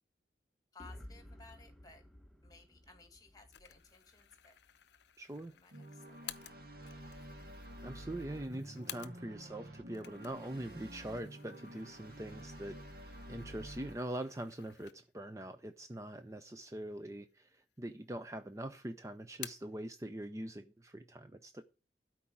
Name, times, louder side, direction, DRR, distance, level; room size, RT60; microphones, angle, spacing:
voice 1, 0.7-2.1 2.4-4.6 5.5-7.1, left 3 dB, 20° left, 6 dB, 2.0 m, -59 dB
sound 1, 0.8-4.7, left 1 dB, ahead, 1.0 m, -54 dB
sound 2, 3.5-9.5 9.8-15.3 15.7-15.8 16.7-17.3 17.6-18.4 18.7-19.8, left 12 dB, 75° left, 0.7 m, -53 dB
voice 2, 5.2-5.5 7.8-21.6, right 1 dB, 15° right, 9 dB, 0.5 m, -43 dB
sound 3, 5.7-13.9, right 1 dB, 55° right, 1.8 m, -50 dB
12.5 x 4.7 x 8.6 m, 0.34 s
head